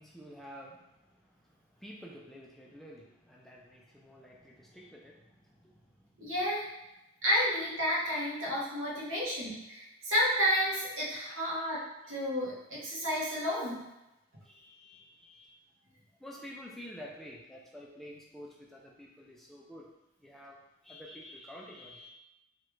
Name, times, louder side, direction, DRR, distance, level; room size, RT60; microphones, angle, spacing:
voice 1, 0.0-6.1 11.3-11.7 12.0-12.2 14.4-15.5 16.2-19.9 20.2-20.6 20.8-22.1, equal, ahead, -3 dB, 0.4 m, -50 dB
voice 2, 6.2-6.7 7.2-11.8 12.1-13.8, equal, 65° right, -7 dB, 1.2 m, -31 dB
3.1 x 2.4 x 3.0 m, 0.95 s
head